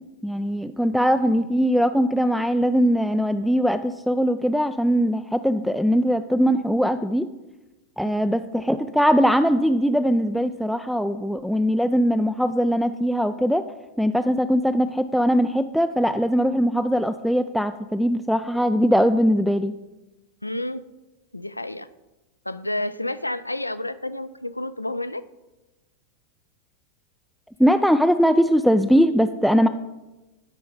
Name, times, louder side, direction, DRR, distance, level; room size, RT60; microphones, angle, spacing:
voice 1, 0.2-7.3 8.0-13.6 14.0-19.7 27.6-29.7, equal, ahead, 8 dB, 0.3 m, -21 dB
voice 2, 20.4-20.8 21.3-21.9 22.5-25.2, left 1 dB, 85° left, 14 dB, 0.4 m, -30 dB
12.0 x 4.7 x 5.0 m, 1.1 s
figure-of-eight pair, 90°, 0 cm